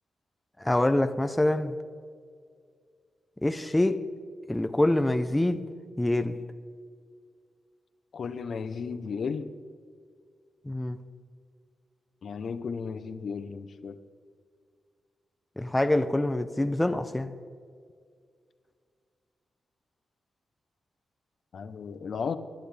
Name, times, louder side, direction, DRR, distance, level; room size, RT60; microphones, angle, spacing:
voice 1, 0.6-1.7 3.4-4.0 4.5-5.6 6.0-6.4 10.7-11.0 15.6-17.3, left 1 dB, 10° left, 0.8 m, -25 dB
voice 2, 8.1-9.5 12.2-14.0 21.5-22.4, left 5 dB, 65° left, 0.9 m, -34 dB
24.5 x 11.0 x 3.5 m
cardioid pair, 75°, 0 cm